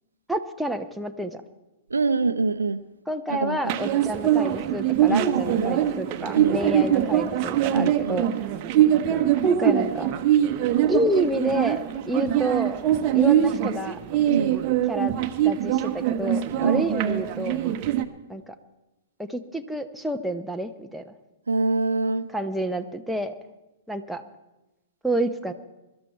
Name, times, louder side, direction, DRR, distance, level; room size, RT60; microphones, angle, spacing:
voice 1, 0.3-1.4 3.1-8.3 9.4-10.1 10.9-12.8 13.1-14.0 14.9-17.6 18.3-18.5 19.3-21.1 22.3-23.3 23.9-24.2 25.0-25.5, right 1 dB, ahead, 5 dB, 0.9 m, -29 dB
voice 2, 1.9-2.8 3.3-3.6 5.1-5.8 6.3-6.6 7.7-8.2 14.3-14.5 16.6-17.1 21.5-22.3, right 3 dB, 75° right, 13 dB, 0.7 m, -25 dB
sound 1, 3.7-18.0, right 11 dB, 35° right, 1.0 m, -23 dB
22.5 x 12.5 x 4.5 m, 1.0 s
figure-of-eight pair, 110°, 0 cm